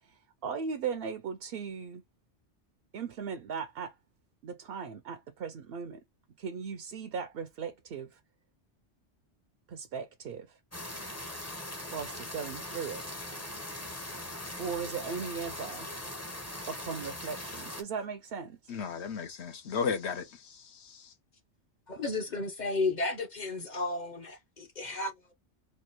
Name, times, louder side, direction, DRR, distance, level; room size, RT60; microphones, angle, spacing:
voice 1, 0.0-2.0 2.9-4.0 4.4-6.0 6.4-8.2 9.7-10.6 11.9-13.0 14.6-15.9 16.7-18.7, right 6 dB, 65° right, 0.7 m, -38 dB
sound 1, 10.7-17.8, left 1 dB, 15° left, 0.7 m, -40 dB
voice 2, 18.7-21.1, left 6 dB, 70° left, 1.0 m, -35 dB
voice 3, 21.9-25.3, left 3 dB, 40° left, 0.9 m, -33 dB
4.2 x 2.4 x 2.9 m
omnidirectional pair, 1.2 m